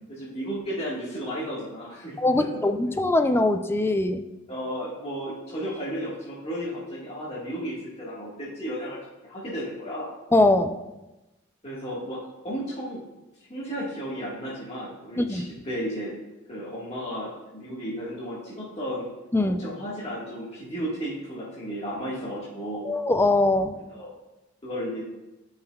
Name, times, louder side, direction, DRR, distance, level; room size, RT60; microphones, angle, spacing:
voice 1, 0.1-2.6 4.5-9.0 9.2-10.1 11.6-12.2 12.4-13.0 13.5-16.1 16.5-19.1 19.4-22.9 23.7-24.1 24.6-25.1, equal, 30° left, -8 dB, 1.6 m, -34 dB
voice 2, 2.2-4.3 10.3-10.8 15.2-15.5 19.3-19.6 22.8-23.8, left 2 dB, 10° left, 8 dB, 0.4 m, -22 dB
12.5 x 5.6 x 2.3 m, 1.0 s
head